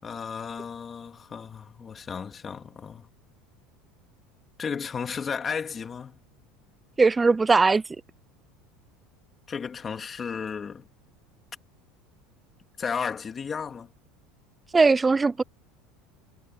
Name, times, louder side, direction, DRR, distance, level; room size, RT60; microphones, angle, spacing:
voice 1, 0.0-3.1 4.6-6.2 9.5-10.9 12.8-13.9, left 6 dB, 25° left, 3.1 m, -34 dB
voice 2, 7.0-7.8 14.7-15.4, right 4 dB, 15° right, 0.4 m, -19 dB
supercardioid pair, 120°, 0 cm